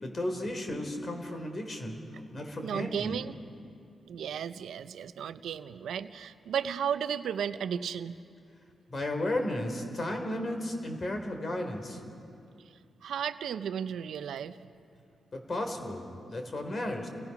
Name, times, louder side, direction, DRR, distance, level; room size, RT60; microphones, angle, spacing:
voice 1, 0.0-2.0 2.3-3.2 8.9-12.0 15.3-17.1, left 1 dB, 40° left, 5 dB, 3.5 m, -34 dB
voice 2, 2.6-3.3 4.1-8.2 13.0-14.6, right 8 dB, 85° right, 12 dB, 0.6 m, -34 dB
29.0 x 18.5 x 5.9 m, 2.5 s
cardioid pair, 80°, 0 cm